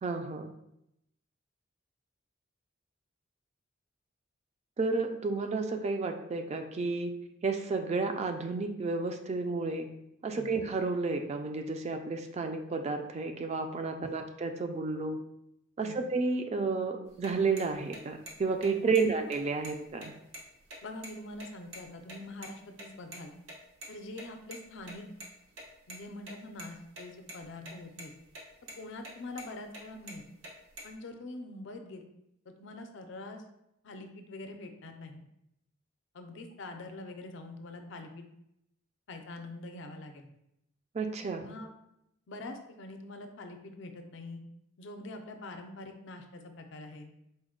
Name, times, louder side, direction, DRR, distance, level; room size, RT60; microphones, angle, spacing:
voice 1, 0.0-0.5 4.8-7.1 7.4-9.9 10.2-15.2 15.8-20.1 40.9-41.5, right 4 dB, 35° right, 6 dB, 0.3 m, -31 dB
sound 1, 17.1-22.2 22.4-22.5 22.8-22.9 23.1-23.2 23.5-23.6 23.8-23.9 24.2-25.3 25.5-26.0 26.3-27.0 27.3-27.7 28.0-28.4 28.7-28.8 29.0-29.5 29.7-30.9, right 1 dB, 90° right, 0.9 m, -45 dB
voice 2, 20.8-23.3 23.9-25.1 25.9-28.1 28.8-30.3 30.8-32.0 32.6-33.4 33.8-35.2 36.1-38.3 39.1-40.3 41.3-41.7 42.3-44.4 44.8-47.1, left 2 dB, 65° left, 5 dB, 0.4 m, -44 dB
4.0 x 2.1 x 3.6 m, 0.81 s
head